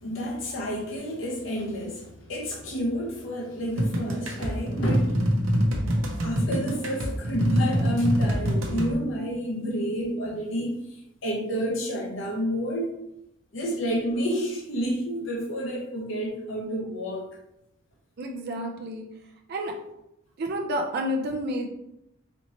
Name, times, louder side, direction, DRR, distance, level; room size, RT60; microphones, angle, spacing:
voice 1, 0.0-5.2 5.7-5.8 6.1-12.9 13.5-17.3, equal, 65° left, -2 dB, 0.7 m, -30 dB
sound 1, 3.8-8.9, equal, 75° right, 0.8 m, -25 dB
voice 2, 18.2-19.1 19.5-19.7 20.4-21.7, equal, 50° right, 1 dB, 0.4 m, -29 dB
4.3 x 2.8 x 3.0 m, 0.83 s
head